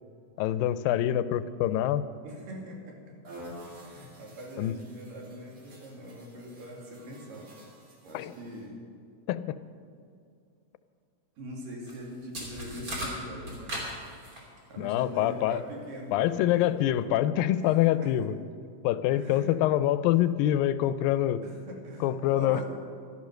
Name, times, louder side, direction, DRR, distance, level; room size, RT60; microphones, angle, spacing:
voice 1, 0.4-2.0 4.6-4.7 8.1-8.3 9.3-9.6 14.8-15.6 16.1-18.4 18.8-21.4 22.0-22.6, left 12 dB, 90° left, 14 dB, 2.3 m, -25 dB
voice 2, 2.2-3.1 3.7-7.5 8.0-8.8 11.4-13.8 14.7-16.6 17.6-18.1 19.2-19.5 21.4-22.7, equal, 70° right, -1 dB, 4.0 m, -42 dB
sound 1, 3.2-8.7, equal, 45° right, 4.1 m, -50 dB
sound 2, 11.9-12.0 12.3-14.6, equal, 25° right, 3.1 m, -37 dB
15.5 x 12.0 x 6.5 m, 2.3 s
omnidirectional pair, 4.0 m